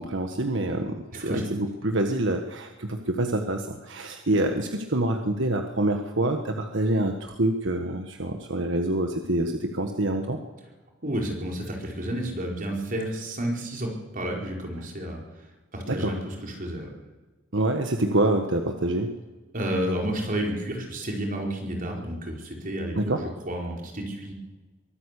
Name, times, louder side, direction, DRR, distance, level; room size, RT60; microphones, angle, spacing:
voice 1, 0.0-10.4 15.9-16.1 17.5-19.1 23.0-23.2, right 1 dB, 70° right, 4 dB, 1.5 m, -26 dB
voice 2, 1.1-1.4 11.0-15.2 15.7-16.9 19.5-24.3, right 1 dB, 45° right, 0 dB, 4.8 m, -31 dB
23.5 x 13.0 x 8.4 m, 1.2 s
head